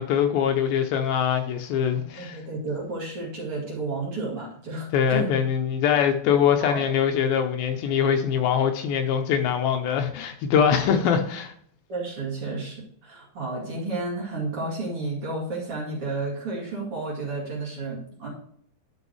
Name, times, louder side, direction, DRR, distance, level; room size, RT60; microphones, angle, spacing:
voice 1, 0.0-2.4 4.9-11.5, left 8 dB, 80° left, 2.3 m, -23 dB
voice 2, 1.9-5.4 6.6-6.8 11.9-18.3, right 3 dB, 40° right, 2.8 m, -32 dB
10.5 x 5.6 x 3.1 m
omnidirectional pair, 4.5 m